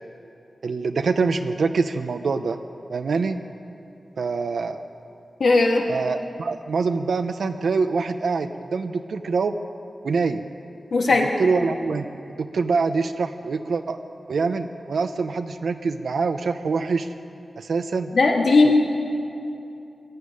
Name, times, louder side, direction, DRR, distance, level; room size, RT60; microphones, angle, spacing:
voice 1, 0.6-2.6 2.9-3.4 4.2-4.8 5.9-9.5 10.0-10.4 11.4-14.0 14.3-17.1 17.6-18.1, right 4 dB, 85° right, 6 dB, 0.8 m, -25 dB
voice 2, 5.4-5.8 10.9-11.3 18.1-18.8, left 3 dB, 80° left, 0 dB, 2.8 m, -17 dB
21.5 x 13.0 x 9.7 m, 2.8 s
wide cardioid pair, 85°, 0 cm